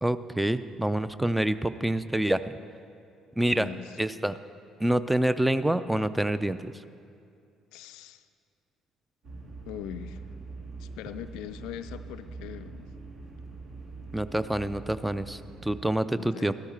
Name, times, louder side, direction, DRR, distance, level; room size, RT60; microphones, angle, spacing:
voice 1, 0.0-2.4 3.4-3.7 4.0-4.3 4.8-6.7 14.1-16.5, right 1 dB, 5° right, 13 dB, 0.4 m, -27 dB
voice 2, 3.5-3.9 7.7-8.3 9.7-10.2 10.8-12.9 16.2-16.5, left 10 dB, 65° left, 11 dB, 0.4 m, -41 dB
sound 1, 9.2-15.8, right 3 dB, 50° right, 1.5 m, -43 dB
13.5 x 13.0 x 3.2 m, 2.4 s
figure-of-eight pair, 50°, 0 cm